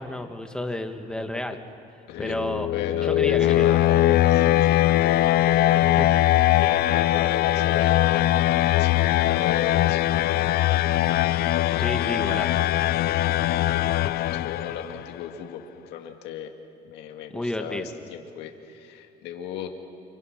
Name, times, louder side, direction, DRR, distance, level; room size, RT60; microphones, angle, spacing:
voice 1, 0.0-1.6 2.2-2.7 3.0-4.3 5.8-6.1 11.8-12.6 17.3-17.9, left 1 dB, 5° left, 5 dB, 1.8 m, -31 dB
voice 2, 2.1-2.4 2.7-5.9 6.6-10.7 14.0-16.5 16.8-19.7, left 8 dB, 85° left, 4 dB, 2.1 m, -36 dB
sound 1, 2.2-15.0, left 14 dB, 65° left, 0.5 m, -21 dB
29.0 x 26.0 x 6.0 m, 2.5 s
cardioid pair, 110°, 17 cm